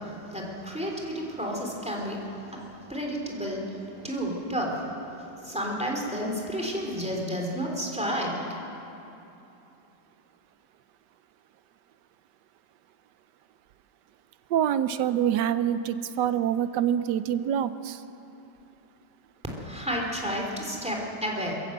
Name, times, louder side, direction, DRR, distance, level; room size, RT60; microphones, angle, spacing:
voice 1, 0.3-2.2 2.9-4.8 5.4-8.3 19.5-21.5, equal, 5° right, -1 dB, 3.1 m, -31 dB
voice 2, 14.5-18.0, right 9 dB, 70° right, 13 dB, 1.1 m, -26 dB
23.0 x 14.5 x 7.9 m, 2.8 s
omnidirectional pair, 2.3 m